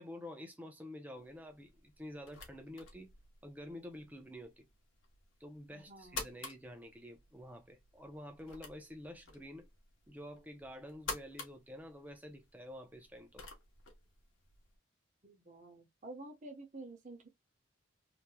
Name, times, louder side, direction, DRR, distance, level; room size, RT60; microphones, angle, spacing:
voice 1, 0.0-3.1 3.4-4.7 5.4-9.7 10.1-13.4, left 1 dB, 10° right, 0.7 m, -49 dB
sound 1, 1.2-14.8, left 3 dB, 70° left, 1.0 m, -51 dB
voice 2, 5.7-6.3 15.2-17.3, right 2 dB, 35° right, 0.9 m, -50 dB
3.2 x 2.9 x 2.2 m
head